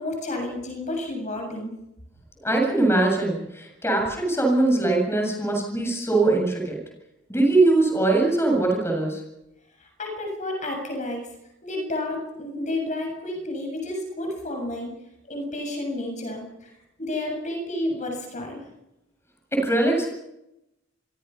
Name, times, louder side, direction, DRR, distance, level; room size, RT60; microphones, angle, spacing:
voice 1, 0.0-1.7 9.8-11.2 11.6-14.9 15.3-16.7 17.0-18.6, left 1 dB, 40° left, 2 dB, 7.3 m, -31 dB
voice 2, 2.4-6.8 7.3-9.2 19.5-20.1, right 2 dB, 15° left, 1 dB, 7.6 m, -21 dB
28.0 x 24.5 x 5.8 m, 0.89 s
head